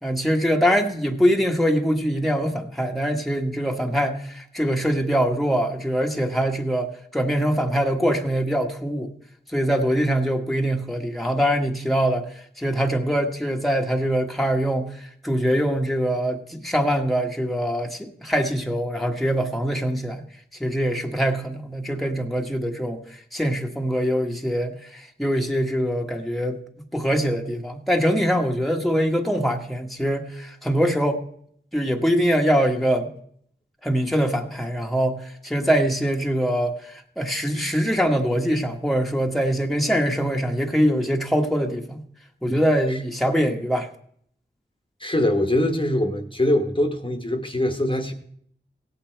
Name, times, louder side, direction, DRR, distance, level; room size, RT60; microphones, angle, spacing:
voice 1, 0.0-9.1 9.5-20.2 20.6-23.0 23.3-31.2 31.7-33.1 33.8-42.0 42.4-43.9, equal, ahead, 2 dB, 1.3 m, -23 dB
voice 2, 45.0-48.1, left 1 dB, 25° left, 5 dB, 1.3 m, -23 dB
16.5 x 8.5 x 4.5 m, 0.65 s
wide cardioid pair, 50°, 20 cm